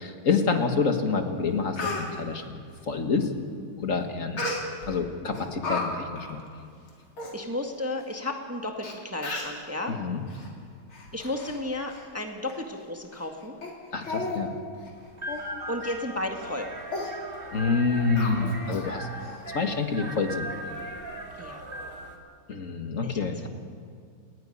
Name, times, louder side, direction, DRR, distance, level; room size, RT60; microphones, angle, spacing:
voice 1, 0.0-2.6 2.9-3.3 3.8-4.5 4.9-6.4 9.9-10.2 13.9-14.5 17.5-19.1 19.5-20.5 22.5-23.4, left 4 dB, 40° left, 5 dB, 1.8 m, -27 dB
Speech, 1.1-1.2 1.5-2.1 4.4-4.9 5.3-5.8 6.2-6.3 6.9-7.0 7.2-7.3 8.1-8.2 8.8-8.9 9.2-9.6 10.3-10.5 10.9-11.6 11.9-12.1 12.5-12.6 13.1-13.3 13.6-13.7 14.0-14.4 14.7-14.9 15.3-15.5 15.8-16.0 16.3-16.5 16.9-17.1 18.2-18.8 19.2-19.3, left 3 dB, 75° left, 4.0 m, -33 dB
voice 2, 7.3-10.0 11.1-13.6 15.7-16.7 21.4-21.7 23.0-23.5, left 2 dB, 10° right, 2 dB, 1.4 m, -33 dB
sound 1, 15.0-22.2, right 1 dB, 25° right, 2.4 m, -39 dB
28.5 x 10.0 x 10.0 m, 2.3 s
omnidirectional pair, 2.3 m